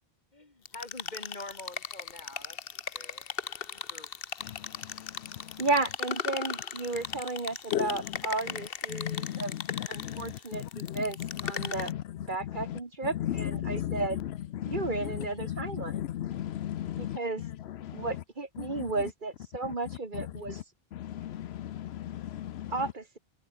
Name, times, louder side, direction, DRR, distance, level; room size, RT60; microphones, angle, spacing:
voice 1, 0.3-3.2 3.7-4.1, left 2 dB, 45° left, 2.9 m, -46 dB
sound 1, 0.6-11.9, left 7 dB, 65° left, 1.2 m, -38 dB
voice 2, 5.6-9.6 9.9-11.2 11.4-11.9 12.3-14.2 14.7-16.0 17.0-17.4 17.9-20.6 22.7-23.2, right 3 dB, 50° right, 2.2 m, -33 dB
voice 3, 8.9-9.4 9.7-11.3 11.6-12.0 12.7-12.8 13.2-14.0 14.6-14.8 15.4-17.2 17.8-18.1 18.6-18.8 20.9-22.7, left 12 dB, 80° left, 0.9 m, -35 dB
omnidirectional pair, 1.0 m